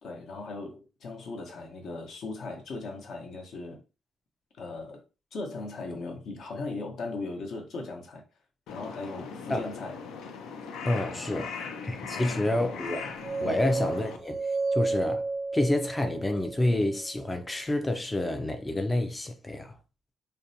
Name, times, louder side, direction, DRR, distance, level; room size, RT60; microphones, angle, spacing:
voice 1, 0.0-3.8 4.5-5.0 5.3-8.2 8.7-10.0 11.0-11.6 12.1-12.8 13.4-13.7, left 3 dB, 65° left, 0.8 m, -38 dB
Crow, 8.7-14.2, left 5 dB, 85° left, 0.4 m, -39 dB
voice 2, 10.9-11.5 11.8-13.1 13.4-15.3 15.5-19.8, left 1 dB, 15° left, 0.3 m, -28 dB
sound 1, 12.9-17.0, right 3 dB, 70° right, 0.5 m, -32 dB
2.5 x 2.1 x 2.6 m
cardioid pair, 90°, 0 cm